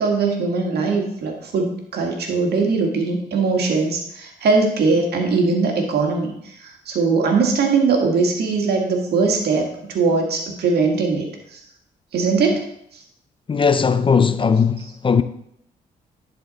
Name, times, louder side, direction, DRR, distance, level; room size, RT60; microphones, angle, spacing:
voice 1, 0.0-11.6 12.1-12.6, right 4 dB, 75° right, 1.7 m, -20 dB
voice 2, 13.5-15.2, left 6 dB, 30° left, 0.5 m, -18 dB
10.5 x 4.4 x 4.0 m
cardioid pair, 70°, 17 cm